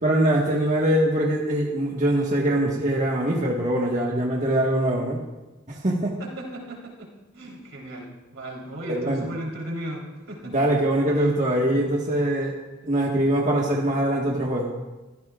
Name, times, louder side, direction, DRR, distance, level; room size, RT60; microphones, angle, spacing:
voice 1, 0.0-5.2 5.7-6.2 8.8-9.3 10.5-12.6 12.8-14.7, right 1 dB, 40° right, -2 dB, 1.6 m, -23 dB
voice 2, 6.2-7.1 7.3-10.6, right 1 dB, 75° right, -1 dB, 3.7 m, -36 dB
24.5 x 15.0 x 2.5 m, 1.1 s
head